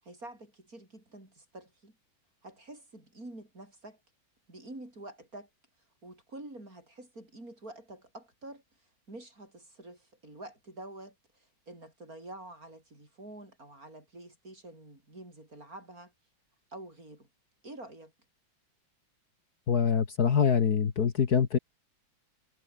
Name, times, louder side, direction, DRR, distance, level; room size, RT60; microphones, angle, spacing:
voice 1, 0.0-2.0 2.4-4.0 4.5-5.5 6.0-8.6 9.1-16.1 16.7-17.3 17.6-18.1, right 2 dB, 45° right, 8.2 m, -47 dB
voice 2, 19.7-21.6, left 7 dB, 55° left, 1.9 m, -24 dB
omnidirectional pair, 2.1 m